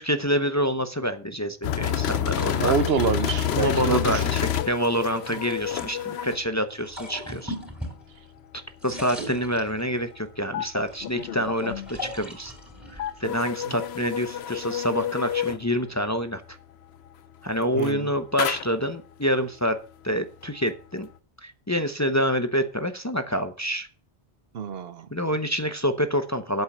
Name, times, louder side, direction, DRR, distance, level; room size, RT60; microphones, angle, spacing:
voice 1, 0.0-2.8 3.5-7.5 8.8-12.5 12.9-16.6 17.4-19.8 20.0-21.1 21.4-23.9 25.1-26.6, equal, 20° left, 8 dB, 0.7 m, -27 dB
sound 1, 1.6-6.4 10.5-11.9 13.0-15.7 17.7-18.0 18.4-18.8, left 10 dB, 80° left, 0.9 m, -28 dB
sound 2, 2.3-5.9 6.7-8.4 8.7-10.2 10.7-14.1, left 1 dB, ahead, 3.8 m, -41 dB
voice 2, 2.6-4.2 5.3-5.4 13.7-13.8 17.7-18.1 24.5-25.1, right 7 dB, 70° right, 13 dB, 1.0 m, -26 dB
8.5 x 7.8 x 6.0 m, 0.40 s
omnidirectional pair, 1.1 m